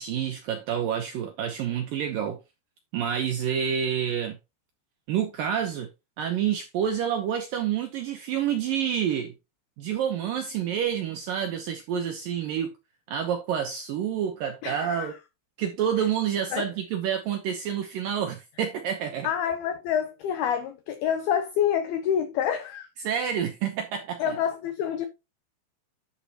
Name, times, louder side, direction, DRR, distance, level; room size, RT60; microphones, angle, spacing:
voice 1, 0.0-2.4 2.9-4.4 5.1-5.9 6.2-9.3 9.8-12.8 13.1-15.1 15.6-19.3 23.0-24.4, right 8 dB, 85° right, 1.9 m, -28 dB
voice 2, 14.6-15.1 16.0-16.1 16.5-16.7 19.2-22.9 24.2-25.1, left 9 dB, 80° left, 2.2 m, -27 dB
12.0 x 6.4 x 2.9 m
omnidirectional pair, 5.4 m